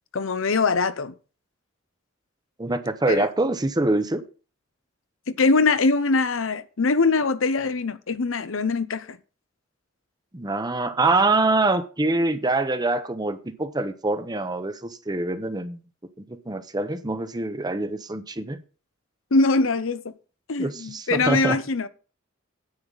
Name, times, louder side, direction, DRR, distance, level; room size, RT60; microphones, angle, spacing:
voice 1, 0.1-1.1 3.1-3.3 5.3-9.2 19.3-20.1 20.5-21.9, left 3 dB, 75° left, 0.7 m, -22 dB
voice 2, 2.6-4.2 10.3-15.8 16.3-18.6 20.6-21.6, right 2 dB, 20° right, 0.9 m, -25 dB
9.7 x 8.8 x 4.0 m
head